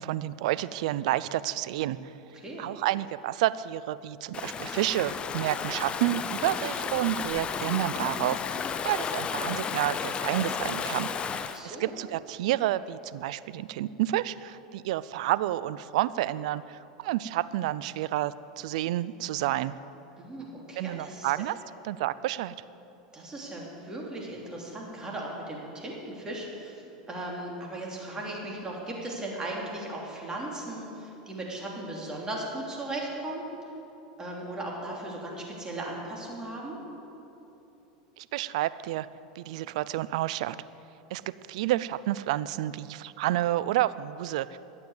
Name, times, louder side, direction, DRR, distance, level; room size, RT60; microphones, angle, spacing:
voice 1, 0.0-2.0 2.6-11.1 11.6-19.7 20.8-21.6 21.8-22.5 38.2-39.1 39.4-40.6 41.1-41.2 41.5-44.6, right 14 dB, 70° right, 17 dB, 0.4 m, -29 dB
Stream / Ocean, 4.3-11.6, left 6 dB, 25° left, 0.6 m, -33 dB
voice 2, 11.4-11.9 20.2-21.3 23.1-33.5 34.2-36.8, right 1 dB, 20° right, -2 dB, 3.1 m, -37 dB
12.0 x 8.7 x 8.0 m, 3.0 s
hypercardioid pair, 105°, 4 cm